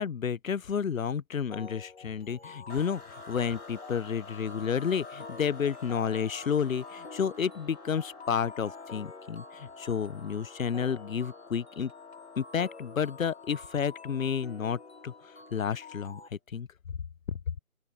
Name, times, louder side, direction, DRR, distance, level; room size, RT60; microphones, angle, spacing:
voice 1, 0.0-11.9 12.4-15.1 15.5-16.2 16.5-16.7 17.3-17.4, left 7 dB, 65° left, 0.6 m, -31 dB
sound 1, 1.5-16.3, left 4 dB, 45° left, 1.9 m, -49 dB
sound 2, 2.7-16.1, left 3 dB, 85° left, 3.2 m, -49 dB
open air
figure-of-eight pair, 175°, 44 cm